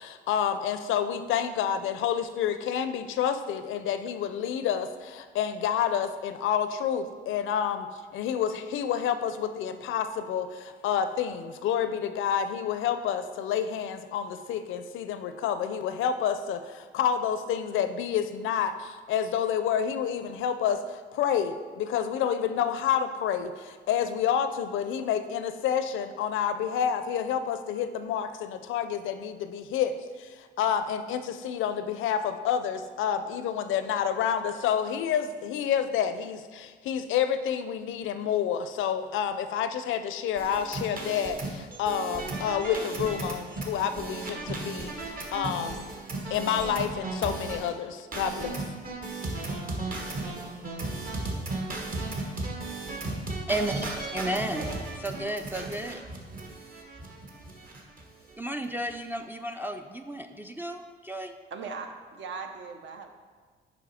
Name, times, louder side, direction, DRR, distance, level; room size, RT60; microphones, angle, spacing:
voice 1, 0.0-45.8 46.3-48.6, left 8 dB, 80° left, 10 dB, 0.5 m, -29 dB
sound 1, 40.4-47.7 48.1-58.0 58.3-58.4 58.7-58.9, right 2 dB, 45° right, 1.2 m, -35 dB
voice 2, 53.5-54.7 55.0-56.0 58.4-61.3, right 1 dB, 10° right, 3 dB, 0.3 m, -33 dB
voice 3, 54.1-54.7 61.5-63.1, right 5 dB, 70° right, 5 dB, 0.8 m, -39 dB
6.3 x 5.2 x 4.2 m, 1.5 s
cardioid pair, 90°, 20 cm